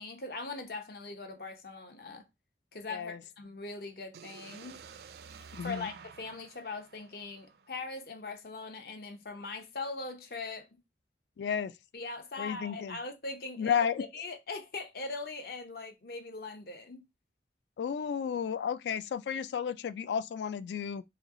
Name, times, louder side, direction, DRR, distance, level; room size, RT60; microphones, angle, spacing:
voice 1, 0.0-2.3 2.7-4.8 5.6-10.7 11.9-17.0, left 3 dB, 55° left, 0.8 m, -41 dB
sound 1, 4.1-8.0, right 6 dB, 60° right, 0.4 m, -51 dB
voice 2, 5.5-5.9 11.4-11.7 12.4-13.0 13.6-14.0 17.8-21.0, left 7 dB, 75° left, 0.3 m, -32 dB
3.2 x 3.0 x 3.6 m
head